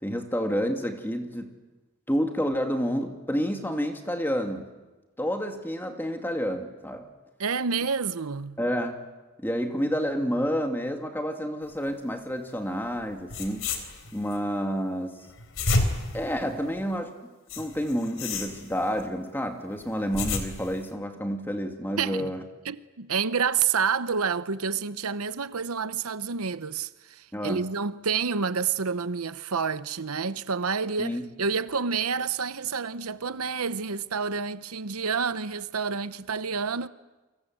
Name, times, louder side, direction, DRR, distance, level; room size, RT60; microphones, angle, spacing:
voice 1, 0.0-1.6 2.1-4.7 5.2-7.1 8.6-9.0 9.4-13.7 14.1-15.2 16.1-17.1 17.6-22.4 27.3-27.6 31.0-31.2, equal, 10° left, 2.4 m, -29 dB
voice 2, 7.4-8.6 22.0-22.3 22.6-36.9, right 5 dB, 90° right, 0.9 m, -29 dB
sound 1, 13.0-13.1 13.3-14.4 15.3-16.9 17.5-19.0 19.8-20.9, left 2 dB, 70° left, 3.7 m, -31 dB
29.5 x 24.5 x 7.9 m
head